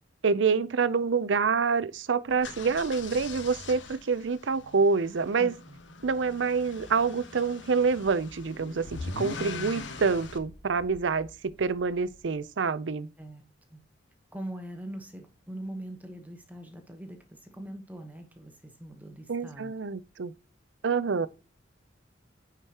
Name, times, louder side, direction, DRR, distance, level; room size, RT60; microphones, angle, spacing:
voice 1, 0.2-5.5 6.0-13.1 19.3-20.3 20.8-21.3, right 5 dB, 75° right, 0.5 m, -27 dB
sound 1, 2.3-10.4, left 4 dB, 75° left, 1.1 m, -42 dB
voice 2, 5.4-6.0 13.2-13.4 13.7-13.8 14.3-19.7, right 1 dB, 10° right, 1.1 m, -42 dB
sound 2, 7.8-12.5, equal, 30° left, 2.1 m, -52 dB
9.8 x 4.9 x 2.9 m
head